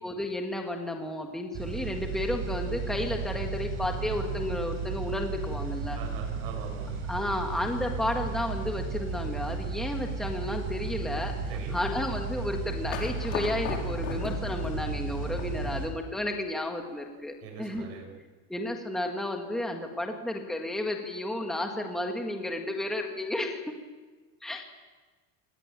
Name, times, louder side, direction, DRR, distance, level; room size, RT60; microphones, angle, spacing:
voice 1, 0.0-6.0 7.1-11.3 11.7-17.9 18.5-23.6 24.4-24.6, left 1 dB, ahead, 3 dB, 1.7 m, -32 dB
sound 1, 1.5-15.9, right 4 dB, 30° right, 5.7 m, -34 dB
voice 2, 5.9-6.9 11.5-11.8 17.4-18.1, right 6 dB, 55° right, 2 dB, 7.2 m, -42 dB
sound 2, 12.9-15.9, left 7 dB, 80° left, 5.3 m, -37 dB
25.5 x 20.0 x 9.0 m, 1.3 s
cardioid pair, 170°, 39 cm